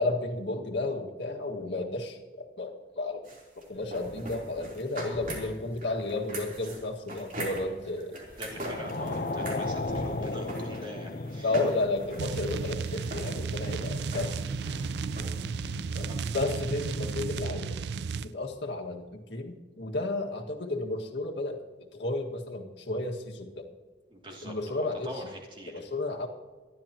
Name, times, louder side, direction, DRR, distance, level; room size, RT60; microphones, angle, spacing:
voice 1, 0.0-3.2 3.6-8.2 11.4-14.3 15.9-16.1 16.3-17.7 18.2-23.7 24.4-25.1 25.7-26.3, left 2 dB, 90° left, 1 dB, 1.9 m, -32 dB
sound 1, 3.2-15.3, right 1 dB, 45° right, 3.6 m, -41 dB
sound 2, 8.4-17.2, left 2 dB, 55° left, 0.8 m, -37 dB
voice 2, 8.4-11.5 13.7-13.9 16.1-16.2 24.1-25.9, equal, 30° right, 0 dB, 2.6 m, -43 dB
sound 3, 12.2-18.3, right 5 dB, 75° right, 0.4 m, -33 dB
25.0 x 12.0 x 3.0 m, 1.4 s
head